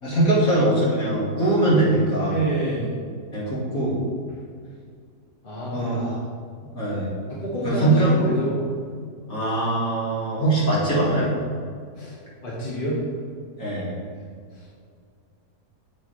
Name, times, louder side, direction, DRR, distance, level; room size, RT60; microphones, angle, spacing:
voice 1, 0.0-2.4 3.3-4.0 5.7-6.2 6.7-7.1 7.6-8.1 9.3-11.3 13.6-14.0, right 1 dB, 60° left, -7 dB, 3.0 m, -22 dB
voice 2, 2.3-2.9 5.4-5.9 7.3-8.5 12.0-12.2 12.4-13.0 14.5-14.7, right 1 dB, 35° left, -7 dB, 2.3 m, -28 dB
10.0 x 7.7 x 3.4 m, 2.2 s
omnidirectional pair, 1.7 m